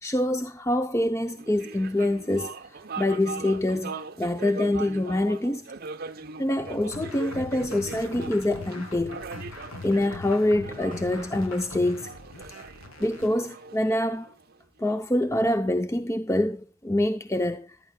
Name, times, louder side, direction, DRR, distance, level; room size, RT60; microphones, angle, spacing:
voice 1, 0.0-5.7 6.4-9.2 9.8-12.1 13.0-14.3 14.8-17.8, left 1 dB, 15° left, 0.5 m, -26 dB
sound 1, 1.3-14.9, right 4 dB, 45° right, 0.7 m, -41 dB
sound 2, 6.9-13.3, left 2 dB, 80° left, 2.7 m, -41 dB
14.5 x 11.5 x 2.2 m
head